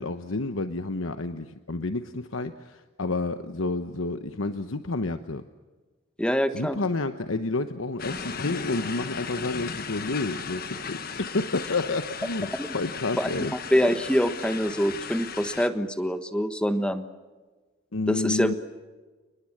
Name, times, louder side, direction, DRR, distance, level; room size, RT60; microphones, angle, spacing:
voice 1, 0.0-5.4 6.5-13.5 17.9-18.5, left 3 dB, 85° left, 9 dB, 1.1 m, -30 dB
voice 2, 6.2-6.8 12.6-12.7 13.2-13.3 13.7-17.0 18.1-18.5, equal, 5° left, 9 dB, 1.3 m, -25 dB
sound 1, 8.0-15.7, left 6 dB, 45° left, 1.3 m, -36 dB
30.0 x 21.0 x 7.4 m, 1.3 s
head